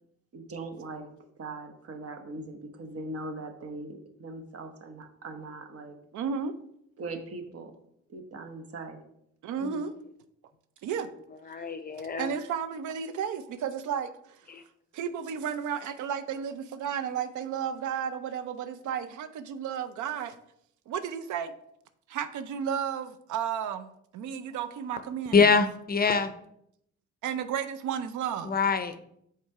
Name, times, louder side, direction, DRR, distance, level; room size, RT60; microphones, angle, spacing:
voice 1, 0.3-1.1 1.4-6.0 7.0-7.7 8.1-9.0, right 2 dB, 50° right, 7 dB, 1.0 m, -40 dB
voice 2, 6.1-6.5 9.4-9.9 10.8-11.1 12.2-14.4 14.9-20.4 20.9-21.5 22.1-25.4 27.2-28.6, right 7 dB, 75° right, 11 dB, 0.5 m, -33 dB
voice 3, 11.5-12.4 14.5-14.6 25.3-26.3 28.4-29.0, left 5 dB, 30° left, 10 dB, 0.5 m, -25 dB
5.3 x 3.8 x 4.7 m, 0.73 s
cardioid pair, 90°, 30 cm